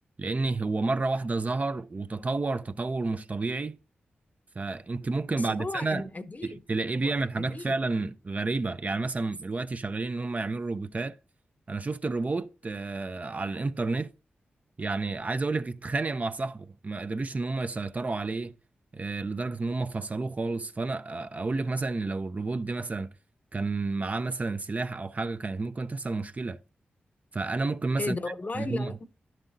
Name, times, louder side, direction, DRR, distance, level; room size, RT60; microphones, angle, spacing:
voice 1, 0.2-3.8 4.6-6.0 6.7-11.2 11.7-14.1 14.8-18.6 18.9-23.1 23.5-26.6 27.3-28.2 28.5-28.9, right 3 dB, 40° right, 0.5 m, -30 dB
voice 2, 5.4-6.6 6.9-7.7 28.0-29.0, left 2 dB, 40° left, 0.8 m, -35 dB
10.5 x 7.5 x 2.7 m
cardioid pair, 45°, 4 cm